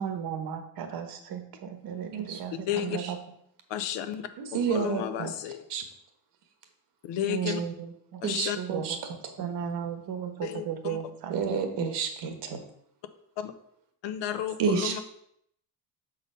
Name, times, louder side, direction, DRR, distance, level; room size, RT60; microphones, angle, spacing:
voice 1, 0.0-3.2 7.3-8.2 8.6-9.0 9.4-11.6, right 8 dB, 60° right, 7 dB, 1.1 m, -35 dB
voice 2, 2.1-3.1 4.4-5.3 5.7-5.8 7.5-7.6 8.2-9.5 11.3-12.6 14.6-15.0, right 6 dB, 75° right, 6 dB, 1.3 m, -31 dB
voice 3, 2.7-3.0 3.7-4.2 4.7-5.6 7.0-7.6 8.2-8.6 10.4-11.0 13.4-13.5 14.0-15.0, left 11 dB, 85° left, 10 dB, 0.8 m, -32 dB
6.7 x 4.0 x 5.4 m, 0.73 s
cardioid pair, 155°, 42 cm